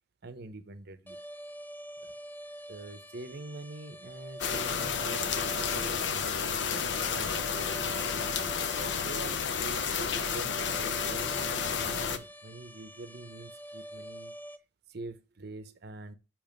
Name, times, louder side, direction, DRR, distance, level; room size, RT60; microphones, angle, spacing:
voice 1, 0.2-1.2 2.0-2.1 2.7-7.4 7.8-14.3 14.9-16.2, right 2 dB, 60° right, 0.8 m, -45 dB
sound 1, 1.1-14.6, equal, 10° left, 0.4 m, -46 dB
sound 2, 4.4-12.2, left 6 dB, 70° left, 0.6 m, -31 dB
7.0 x 3.0 x 5.1 m
head